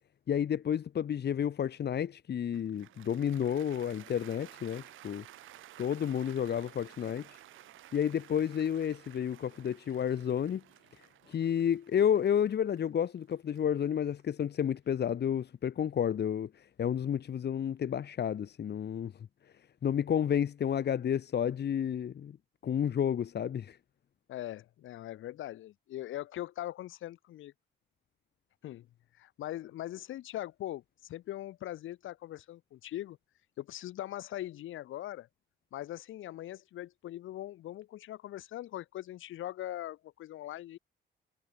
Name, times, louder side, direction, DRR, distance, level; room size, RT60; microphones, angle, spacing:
voice 1, 0.3-5.2 5.8-7.4 7.9-10.6 11.3-19.1 19.8-22.4 22.6-23.8, left 9 dB, 55° left, 2.7 m, -31 dB
Cheering / Applause, 2.5-14.8, right 14 dB, 85° right, 4.7 m, -55 dB
voice 2, 24.3-27.5 28.6-28.9 29.2-33.2 33.6-35.3 35.7-40.8, left 14 dB, 80° left, 4.5 m, -41 dB
cardioid pair, 90°, 20 cm